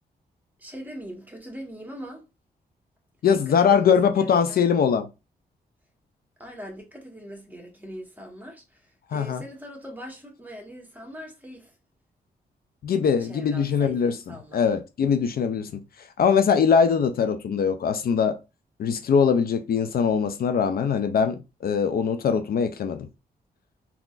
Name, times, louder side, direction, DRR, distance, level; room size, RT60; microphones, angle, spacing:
voice 1, 0.6-2.2 3.2-4.6 6.4-11.7 13.2-14.6, equal, 10° right, 1.4 m, -41 dB
voice 2, 3.2-5.1 9.1-9.4 12.8-14.1 14.5-18.4 18.8-23.1, left 6 dB, 65° left, 0.5 m, -22 dB
3.7 x 2.9 x 2.4 m
cardioid pair, 65°, 17 cm